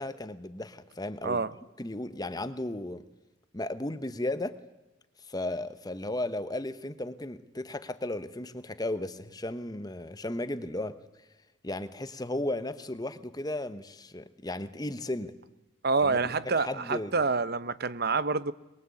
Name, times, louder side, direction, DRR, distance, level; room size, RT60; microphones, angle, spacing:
voice 1, 0.0-1.4 1.8-3.0 3.5-4.5 5.3-11.0 11.6-15.3 16.0-17.1, left 1 dB, 20° left, 1.0 m, -35 dB
voice 2, 15.8-18.5, right 4 dB, 50° right, 0.8 m, -27 dB
22.5 x 22.0 x 8.4 m
head